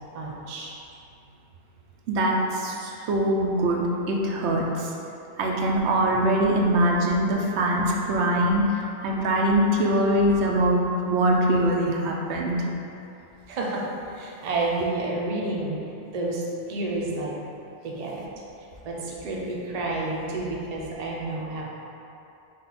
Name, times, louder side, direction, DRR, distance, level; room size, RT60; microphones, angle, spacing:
voice 1, 0.1-0.7 13.5-15.8 16.1-17.3 17.8-18.3 18.8-21.6, right 2 dB, 45° right, -3 dB, 0.6 m, -30 dB
voice 2, 2.1-4.9 5.4-12.7, right 1 dB, 85° right, -1 dB, 0.9 m, -23 dB
5.1 x 2.4 x 4.0 m, 2.8 s
omnidirectional pair, 1.1 m